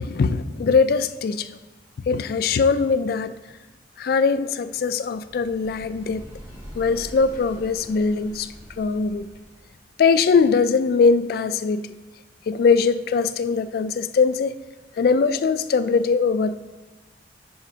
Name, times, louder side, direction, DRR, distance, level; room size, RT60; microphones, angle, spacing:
voice 1, 0.0-1.5 2.1-3.3 4.0-6.3 6.7-9.3 10.0-11.9 12.5-14.6 15.0-16.6, left 5 dB, 55° left, 0.3 m, -21 dB
sound 1, 5.0-9.7, equal, 25° right, 2.0 m, -43 dB
10.0 x 5.0 x 2.8 m
head